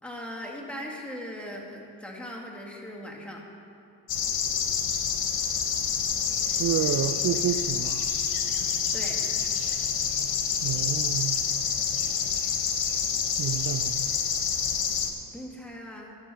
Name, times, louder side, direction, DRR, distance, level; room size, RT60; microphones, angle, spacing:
voice 1, 0.0-3.4 8.9-9.2 15.3-16.2, equal, 5° left, -2 dB, 2.1 m, -39 dB
sound 1, 4.1-15.1, left 7 dB, 80° left, 1.1 m, -27 dB
voice 2, 6.5-8.1 10.6-11.4 13.4-14.1, right 10 dB, 55° right, 9 dB, 0.5 m, -29 dB
14.0 x 6.3 x 5.7 m, 2.8 s
cardioid pair, 70°, 37 cm